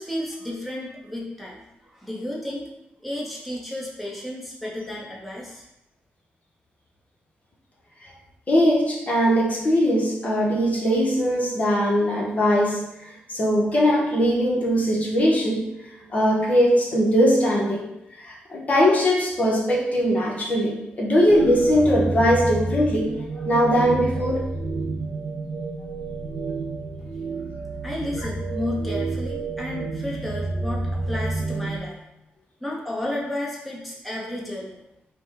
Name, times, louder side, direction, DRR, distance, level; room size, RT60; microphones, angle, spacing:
voice 1, 0.0-2.7 3.0-5.6 27.0-27.1 27.8-32.0 32.6-34.8, left 1 dB, ahead, -4 dB, 1.0 m, -32 dB
voice 2, 8.5-15.6 15.9-17.9 18.2-23.1 23.4-24.4, equal, 40° left, -3 dB, 1.0 m, -20 dB
sound 1, 21.3-31.8, right 3 dB, 70° right, 0.7 m, -29 dB
5.1 x 2.2 x 3.4 m, 0.86 s
cardioid pair, 85°, 4 cm